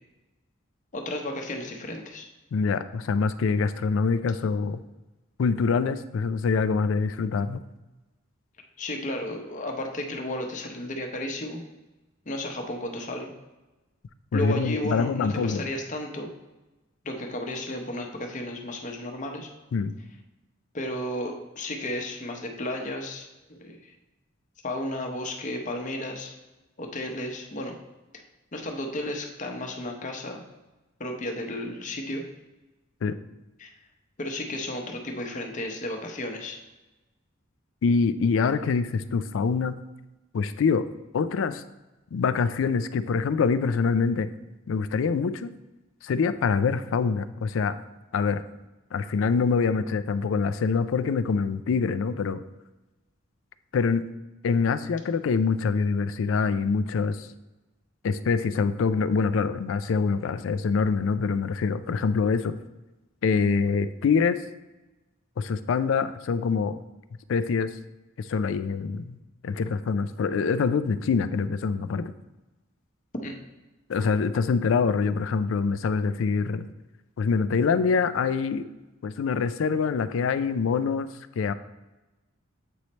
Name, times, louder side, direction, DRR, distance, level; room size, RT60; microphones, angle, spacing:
voice 1, 0.9-2.3 8.8-11.6 12.3-13.3 14.3-16.3 17.0-19.5 20.7-23.9 24.6-26.3 26.8-27.8 28.5-30.4 31.0-32.2 33.6-33.7 34.2-36.6 73.2-73.3, left 1 dB, 40° left, 3 dB, 0.8 m, -33 dB
voice 2, 2.5-4.8 5.4-7.6 14.3-15.6 19.7-19.9 33.0-33.2 37.8-39.8 40.3-40.9 41.1-41.6 42.1-44.3 44.7-45.5 46.0-47.8 48.1-48.4 48.9-52.4 53.7-54.1 54.4-57.3 58.0-62.6 63.2-64.4 65.4-66.7 67.3-67.7 68.2-69.2 69.4-72.1 73.9-76.6 77.2-78.7 79.0-81.1 81.4-81.5, left 5 dB, 70° left, 12 dB, 0.3 m, -25 dB
7.8 x 3.2 x 4.1 m, 1.1 s
head